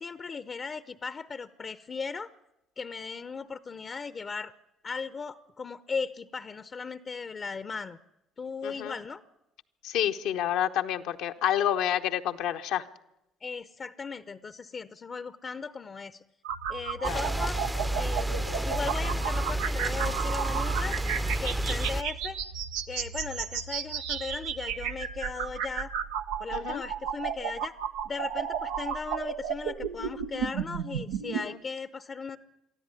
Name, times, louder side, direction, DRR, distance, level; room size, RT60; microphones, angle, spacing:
voice 1, 0.0-2.3 2.8-4.5 4.8-8.0 8.4-9.2 13.4-16.2 16.7-17.6 18.0-21.0 21.4-22.4 22.9-25.9 26.4-27.8 28.0-32.4, left 5 dB, 40° left, 14 dB, 0.8 m, -37 dB
voice 2, 8.6-8.9 9.8-12.8 17.1-17.2 26.5-26.8 31.4-31.6, left 10 dB, 75° left, 6 dB, 1.0 m, -29 dB
sound 1, 16.4-31.4, right 7 dB, 85° right, 0.9 m, -33 dB
sound 2, 17.0-22.0, right 1 dB, 10° right, 0.8 m, -30 dB
23.5 x 14.0 x 9.8 m, 0.88 s
hypercardioid pair, 55°, 0 cm